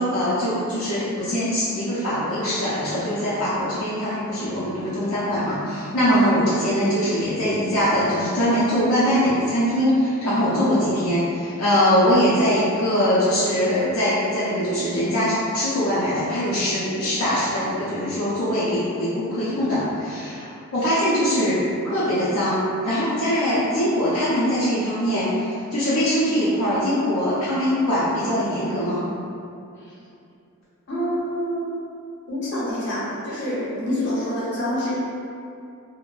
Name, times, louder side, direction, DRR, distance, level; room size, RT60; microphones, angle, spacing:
voice 1, 0.0-29.0, equal, 75° left, -10 dB, 0.5 m, -22 dB
voice 2, 30.9-31.7 32.3-35.0, equal, 55° left, -8 dB, 0.8 m, -26 dB
2.5 x 2.1 x 3.1 m, 2.6 s
head